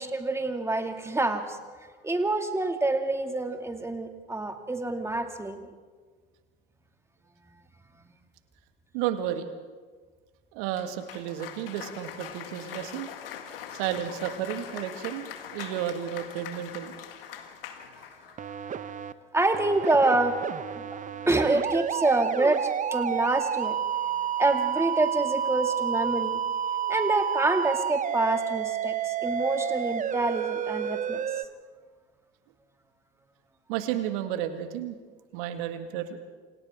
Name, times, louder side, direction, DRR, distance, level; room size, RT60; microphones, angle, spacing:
voice 1, 0.0-1.6 2.0-5.7 17.8-18.1 19.3-20.4 21.3-23.8 24.4-26.4 26.9-31.2, right 2 dB, 10° right, 5 dB, 2.4 m, -27 dB
voice 2, 8.9-9.5 10.5-13.1 13.7-16.9 33.7-35.0 35.3-36.2, right 11 dB, 60° right, 8 dB, 2.0 m, -32 dB
Cheering / Applause, 10.7-18.4, left 9 dB, 75° left, 1.9 m, -42 dB
sound 1, 18.4-19.1 19.5-31.4, right 8 dB, 25° right, 0.8 m, -30 dB
28.0 x 26.5 x 3.7 m, 1.5 s
figure-of-eight pair, 70°, 29 cm